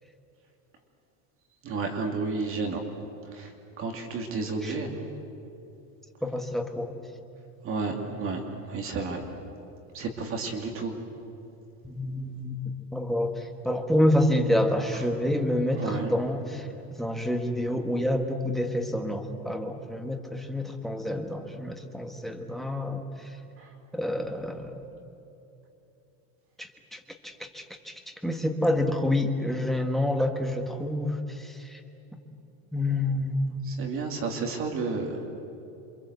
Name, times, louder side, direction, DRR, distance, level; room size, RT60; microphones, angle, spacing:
voice 1, 1.6-2.8 3.3-3.5 3.8-5.0 7.6-9.2 9.9-11.0 15.8-16.1 23.6-23.7 33.7-35.2, right 4 dB, 30° right, 3 dB, 2.6 m, -31 dB
voice 2, 6.2-6.9 7.9-8.3 11.8-12.6 12.9-23.4 23.9-24.9 26.6-31.8 32.7-33.7, left 1 dB, ahead, 5 dB, 1.4 m, -28 dB
28.0 x 25.0 x 8.1 m, 2.9 s
supercardioid pair, 165°, 45 cm